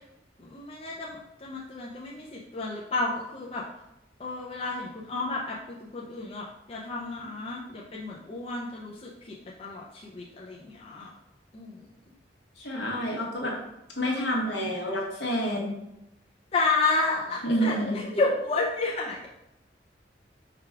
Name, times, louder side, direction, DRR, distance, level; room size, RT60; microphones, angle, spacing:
voice 1, 0.4-3.6 4.2-11.1 11.5-11.8 16.5-19.3, left 3 dB, 30° left, -4 dB, 0.5 m, -31 dB
voice 2, 12.6-13.5 13.9-15.7 17.4-18.0, equal, 70° left, -2 dB, 1.3 m, -28 dB
5.0 x 2.3 x 4.5 m, 0.86 s
head